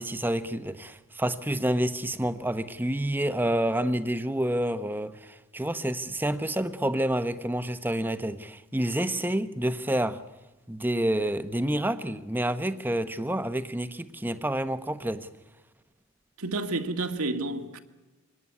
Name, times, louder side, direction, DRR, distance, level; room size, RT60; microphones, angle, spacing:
voice 1, 0.0-10.2 10.7-15.3, right 1 dB, 10° right, 0.9 m, -28 dB
voice 2, 16.4-17.8, right 2 dB, 85° right, 2.0 m, -30 dB
25.5 x 18.5 x 9.7 m
head